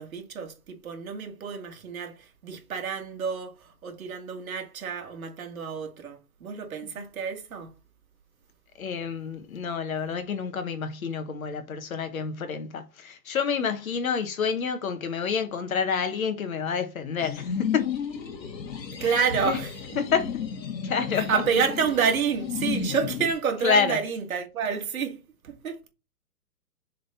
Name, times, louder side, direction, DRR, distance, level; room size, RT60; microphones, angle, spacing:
voice 1, 0.0-7.7 18.8-19.7 20.7-20.8 21.1-25.9, right 6 dB, 55° right, 1.9 m, -29 dB
voice 2, 8.8-17.8 19.5-19.6 20.0-20.3 20.8-21.3 23.6-24.0, left 6 dB, 55° left, 1.3 m, -28 dB
sound 1, 17.2-23.3, left 7 dB, 90° left, 1.9 m, -33 dB
6.9 x 3.9 x 4.2 m
hypercardioid pair, 170°, 49 cm